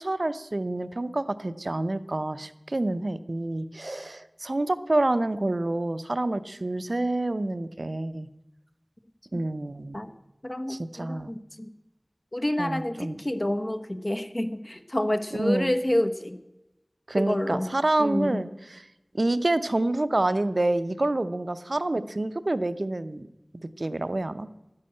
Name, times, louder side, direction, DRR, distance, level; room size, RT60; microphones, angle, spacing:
voice 1, 0.0-8.3 9.3-9.9 10.7-11.3 12.6-13.2 15.3-15.7 17.1-18.5 18.7-18.8 19.1-23.2 23.8-24.5, right 2 dB, 70° right, 13 dB, 0.6 m, -27 dB
voice 2, 10.4-11.7 12.3-16.4 17.2-17.7 18.0-18.4, left 1 dB, 35° left, 9 dB, 1.1 m, -28 dB
13.0 x 9.8 x 7.7 m, 0.96 s
wide cardioid pair, 40°, 0 cm